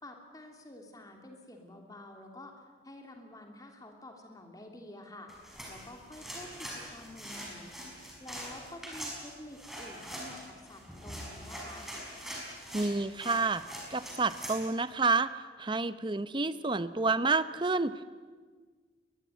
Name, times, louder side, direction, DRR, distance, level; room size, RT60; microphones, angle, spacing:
voice 1, 0.0-7.7 8.2-11.9, left 1 dB, 20° left, 3 dB, 3.0 m, -49 dB
sound 1, 5.3-14.6, equal, ahead, 5.6 m, -43 dB
voice 2, 12.7-13.6 13.9-15.3 15.6-18.0, right 3 dB, 25° right, 14 dB, 0.7 m, -29 dB
21.5 x 21.0 x 9.3 m, 1.5 s
head